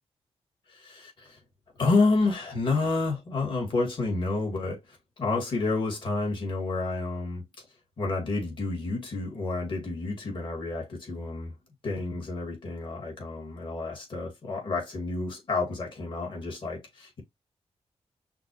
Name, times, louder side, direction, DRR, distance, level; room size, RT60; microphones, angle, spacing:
voice 1, 0.7-1.4 1.8-7.4 8.0-11.5 11.8-17.2, left 3 dB, 50° left, 2.1 m, -29 dB
5.8 x 2.4 x 3.0 m
wide cardioid pair, 155°, 11 cm